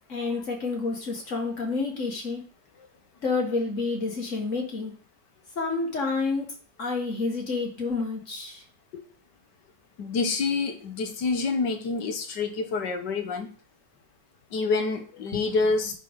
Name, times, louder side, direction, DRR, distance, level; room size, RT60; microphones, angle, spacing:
voice 1, 0.1-2.4 3.2-4.9 5.6-8.6 15.3-15.5, left 3 dB, 45° left, 1 dB, 2.3 m, -29 dB
voice 2, 10.0-13.5 14.5-15.9, left 4 dB, 85° left, 6 dB, 1.9 m, -27 dB
10.5 x 5.1 x 3.8 m, 0.41 s
omnidirectional pair, 1.8 m